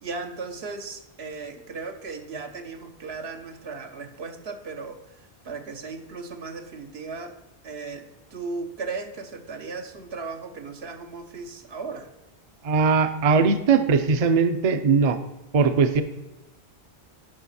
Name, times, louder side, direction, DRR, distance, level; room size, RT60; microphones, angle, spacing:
voice 1, 0.0-5.0 5.4-7.4 7.6-12.1, right 4 dB, 75° right, 6 dB, 1.1 m, -36 dB
voice 2, 12.6-15.2 15.5-16.0, right 5 dB, 45° right, 9 dB, 0.6 m, -20 dB
10.5 x 5.7 x 4.2 m, 1.0 s
omnidirectional pair, 1.1 m